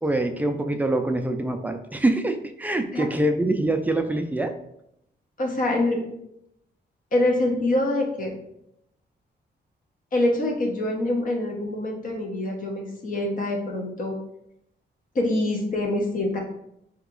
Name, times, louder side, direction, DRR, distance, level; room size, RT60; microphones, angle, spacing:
voice 1, 0.0-4.5, right 1 dB, 10° right, 6 dB, 0.3 m, -24 dB
voice 2, 5.4-6.0 7.1-8.3 10.1-14.1 15.1-16.4, left 1 dB, 50° left, 0 dB, 0.9 m, -25 dB
3.9 x 2.9 x 3.7 m, 0.78 s
wide cardioid pair, 150°, 18 cm